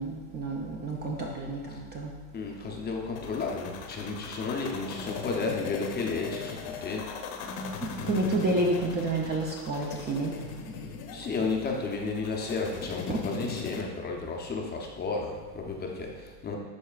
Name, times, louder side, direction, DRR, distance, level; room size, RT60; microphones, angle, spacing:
voice 1, 0.0-2.1 7.8-10.3 13.1-13.2, right 2 dB, 20° right, -1 dB, 0.5 m, -29 dB
voice 2, 2.3-7.0 11.1-16.6, left 4 dB, 20° left, 0 dB, 0.6 m, -33 dB
sound 1, 3.2-13.8, left 6 dB, 60° left, 1.0 m, -39 dB
12.5 x 4.2 x 2.4 m, 1.4 s
supercardioid pair, 135°, 50 cm